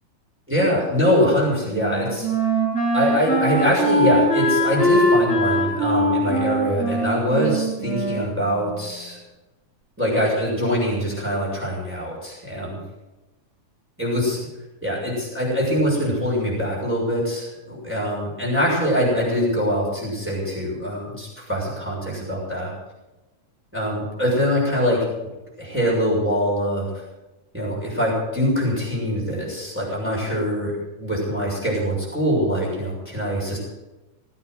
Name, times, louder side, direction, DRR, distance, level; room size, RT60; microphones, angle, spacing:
voice 1, 0.5-2.3 2.9-9.2 10.0-12.8 14.0-14.4 14.8-22.7 23.7-25.1 25.6-27.0 27.5-30.7 31.0-33.6, equal, 5° right, -5 dB, 6.4 m, -23 dB
Wind instrument woodwind instrument, 1.2-9.0, equal, 15° left, 7.9 m, -22 dB
19.5 x 9.4 x 7.8 m, 1.1 s
omnidirectional pair, 3.7 m